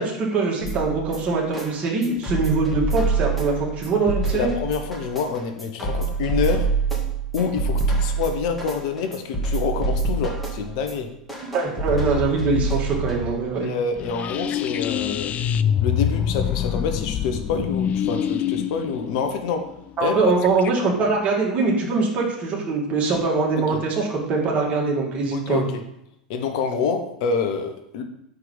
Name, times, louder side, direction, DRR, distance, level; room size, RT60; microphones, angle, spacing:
voice 1, 0.0-4.5 11.5-13.7 20.0-25.6, right 4 dB, 35° right, -2 dB, 2.3 m, -23 dB
sound 1, 0.6-13.6, right 3 dB, 5° left, 2.2 m, -26 dB
voice 2, 4.3-6.7 7.3-11.1 13.5-15.3 15.8-19.6 20.0-20.2 23.6-23.8 25.3-25.6 26.3-28.0, left 5 dB, 55° left, 5 dB, 0.9 m, -27 dB
sound 2, 14.0-20.7, left 9 dB, 30° left, 0.3 m, -25 dB
5.8 x 4.6 x 5.5 m, 0.78 s
figure-of-eight pair, 85°, 4 cm